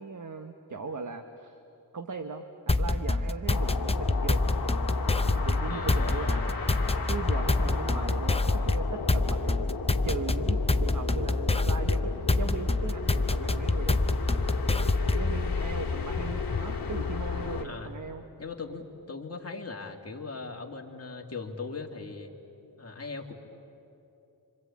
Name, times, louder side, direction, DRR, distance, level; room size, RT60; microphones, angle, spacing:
voice 1, 0.0-1.6 1.9-4.5 5.3-6.6 7.1-9.7 10.0-14.0 14.3-14.4 14.8-18.2, right 4 dB, 50° right, 6 dB, 1.2 m, -38 dB
sound 1, 2.7-15.4, left 2 dB, 15° left, 0.6 m, -26 dB
sound 2, 3.5-17.6, left 5 dB, 60° left, 2.0 m, -34 dB
voice 2, 5.7-7.0 17.6-17.9 18.4-22.3 22.8-23.3, left 4 dB, 40° left, 1 dB, 2.3 m, -39 dB
26.5 x 26.0 x 8.5 m, 2.9 s
wide cardioid pair, 120°, 40 cm